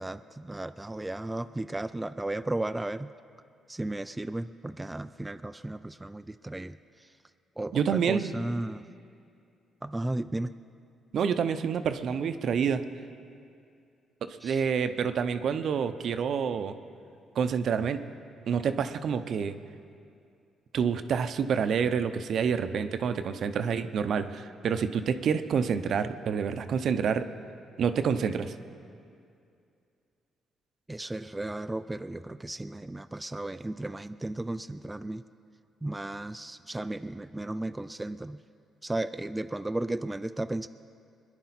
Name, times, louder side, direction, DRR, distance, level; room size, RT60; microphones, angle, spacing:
voice 1, 0.0-3.1 3.7-6.8 7.6-8.8 9.8-10.5 14.4-14.6 30.9-35.2 35.8-38.4 38.8-40.7, right 2 dB, 15° right, 11 dB, 0.3 m, -34 dB
voice 2, 7.7-8.3 11.1-12.8 14.2-16.7 17.4-18.0 18.5-19.6 20.7-27.3 27.8-28.5, right 7 dB, 65° right, 10 dB, 0.7 m, -28 dB
22.0 x 10.5 x 4.2 m, 2.4 s
cardioid pair, 90°, 0 cm